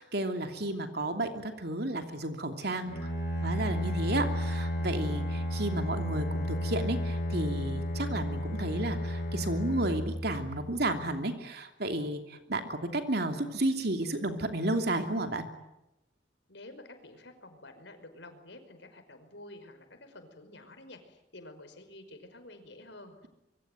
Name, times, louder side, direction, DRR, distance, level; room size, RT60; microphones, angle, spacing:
voice 1, 0.0-3.1 3.4-15.5, right 1 dB, 55° right, 6 dB, 2.9 m, -32 dB
Bowed string instrument, 2.8-10.8, left 1 dB, 45° left, 5.9 m, -32 dB
voice 2, 16.5-23.3, left 2 dB, 70° left, 7 dB, 5.4 m, -50 dB
26.0 x 24.0 x 9.3 m, 0.89 s
head